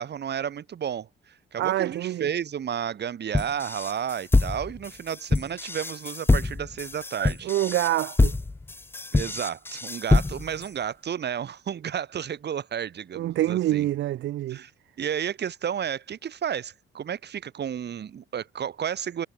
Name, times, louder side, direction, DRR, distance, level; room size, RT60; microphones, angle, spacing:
voice 1, 0.0-7.5 9.1-13.9 14.5-14.7 15.0-19.3, right 8 dB, 60° right, 5.5 m, -32 dB
voice 2, 1.6-2.3 7.4-8.4 13.2-14.6, right 14 dB, 75° right, 0.8 m, -26 dB
sound 1, 3.3-10.6, left 3 dB, 10° left, 0.4 m, -24 dB
cardioid pair, 90°, 20 cm